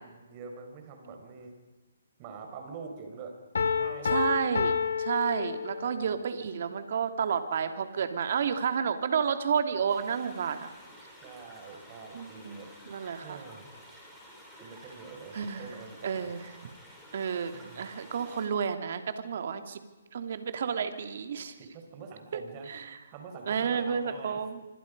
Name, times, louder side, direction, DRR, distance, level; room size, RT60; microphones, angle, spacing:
voice 1, 0.0-1.5 2.2-4.2 5.8-6.1 11.2-12.7 13.2-13.9 14.6-16.3 17.5-17.9 21.6-22.7 23.1-24.4, right 5 dB, 30° right, 4 dB, 5.1 m, -45 dB
Piano, 3.5-6.1, left 6 dB, 75° left, 1.5 m, -29 dB
voice 2, 4.1-10.7 12.1-13.4 15.3-15.7 16.0-16.7 17.1-19.8 20.1-21.5 22.7-23.0 23.5-24.6, right 7 dB, 55° right, 8 dB, 2.6 m, -31 dB
sound 1, 9.9-18.5, equal, ahead, 6.9 m, -51 dB
26.5 x 25.0 x 5.4 m, 1.2 s
hypercardioid pair, 155°, 0 cm